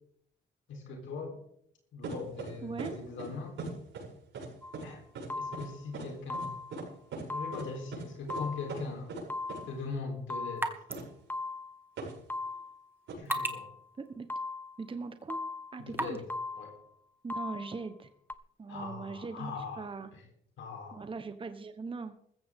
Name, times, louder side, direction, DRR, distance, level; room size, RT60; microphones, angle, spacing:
voice 1, 0.7-1.4 1.9-3.6 4.8-5.0 5.4-6.5 7.3-9.1 9.7-10.8 13.2-13.7 15.8-16.3 16.6-16.8 18.7-20.2 20.6-21.1, left 4 dB, 75° left, 2 dB, 3.8 m, -40 dB
sound 1, 2.0-2.5 2.8-2.9 3.2-3.3 3.6-4.1 4.3-4.5 4.7-4.8 5.1-5.3 5.5-5.6 5.9-6.1 6.3-6.5 6.7-6.8 7.1-7.2 7.5-7.6 7.9-8.0 8.3-8.4 8.7-8.8 9.1-9.2 9.5-9.6 10.9-11.0 12.0-12.1 13.1-13.2, right 3 dB, 75° right, 7.4 m, -39 dB
voice 2, 2.6-2.9 14.0-14.3 14.8-15.4 15.7-16.2 17.2-18.1 18.6-20.1 20.9-22.1, right 4 dB, 25° right, 9 dB, 1.1 m, -40 dB
sound 2, 4.6-4.9 5.3-5.9 6.3-6.9 7.3-7.9 8.3-8.9 9.3-9.9 10.3-10.9 11.3-11.9 12.3-12.9 13.3-13.9 14.3-14.9 15.3-15.9 16.3-16.9 17.3-17.9 18.3-18.4, left 3 dB, 10° left, 0.6 m, -39 dB
sound 3, 9.6-16.4, right 1 dB, 10° right, 1.6 m, -42 dB
15.0 x 14.5 x 3.7 m, 0.70 s
cardioid pair, 90°, 20 cm